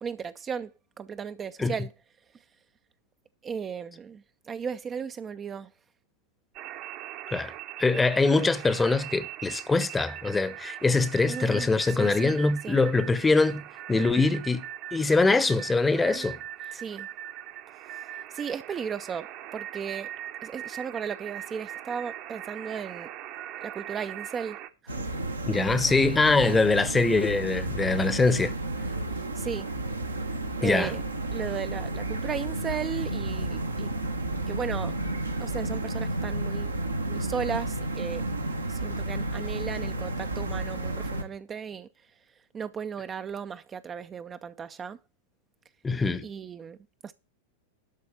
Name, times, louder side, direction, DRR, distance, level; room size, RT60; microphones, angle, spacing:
voice 1, 0.0-1.9 3.4-5.7 11.3-12.3 12.6-12.8 16.0-16.3 16.7-17.1 17.9-20.1 20.4-23.1 23.6-24.6 24.8-25.0 29.1-29.7 30.6-31.0 31.3-33.9 34.5-35.0 35.4-36.7 37.1-38.3 38.7-41.9 42.5-45.0 46.2-46.8 47.0-47.1, right 7 dB, 20° right, 0.4 m, -35 dB
sound 1, 6.5-24.7, right 12 dB, 40° right, 0.9 m, -41 dB
voice 2, 7.8-13.6 13.9-14.6 14.9-16.4 25.5-28.5 30.6-30.9 45.8-46.3, left 3 dB, 10° left, 0.8 m, -23 dB
sound 2, 24.9-41.2, right 2 dB, 80° right, 1.2 m, -32 dB
sound 3, 25.7-28.5, left 6 dB, 65° left, 1.2 m, -47 dB
12.0 x 4.1 x 7.1 m
figure-of-eight pair, 90°, 0 cm